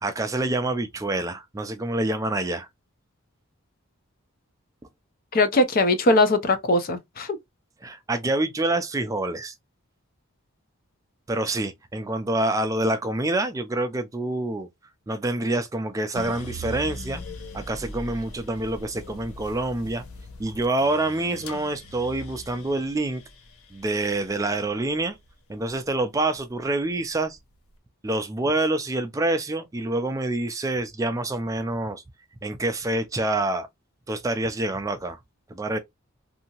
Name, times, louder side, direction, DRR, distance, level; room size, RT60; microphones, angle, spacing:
voice 1, 0.0-2.7 7.8-9.5 11.3-14.7 15.1-17.2 17.5-20.0 20.4-23.2 23.7-25.2 25.5-27.4 28.0-32.0 32.4-33.7 34.1-35.2 35.5-35.8, right 2 dB, 15° right, 0.3 m, -26 dB
voice 2, 5.3-7.4, left 2 dB, 40° left, 0.5 m, -20 dB
sound 1, 16.2-26.4 26.8-27.6, left 1 dB, 80° left, 0.7 m, -41 dB
2.7 x 2.6 x 2.8 m
head